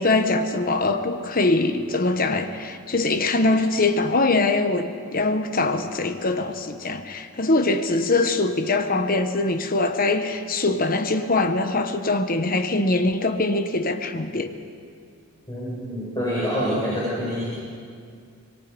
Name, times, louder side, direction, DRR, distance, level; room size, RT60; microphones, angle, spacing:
voice 1, 0.0-14.5, left 2 dB, 40° left, 8 dB, 1.1 m, -23 dB
voice 2, 15.5-17.5, equal, 20° left, -8 dB, 5.4 m, -26 dB
26.0 x 21.0 x 5.3 m, 2.3 s
head